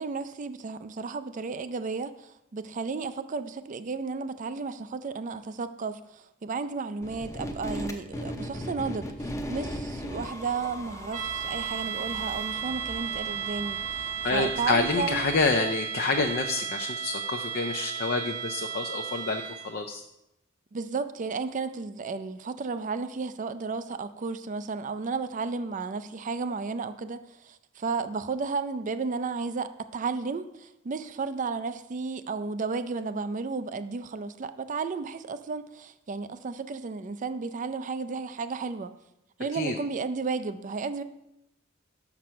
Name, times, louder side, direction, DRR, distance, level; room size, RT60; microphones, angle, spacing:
voice 1, 0.0-6.0 6.4-15.3 20.7-38.9 39.4-41.0, right 4 dB, 40° right, 12 dB, 0.4 m, -33 dB
sound 1, 7.0-15.5, equal, 15° left, 0.7 m, -38 dB
sound 2, 11.1-19.8, right 8 dB, 90° right, 1.0 m, -34 dB
voice 2, 14.2-20.0 39.5-39.7, left 3 dB, 50° left, 5 dB, 0.5 m, -28 dB
6.2 x 6.0 x 5.7 m, 0.86 s
head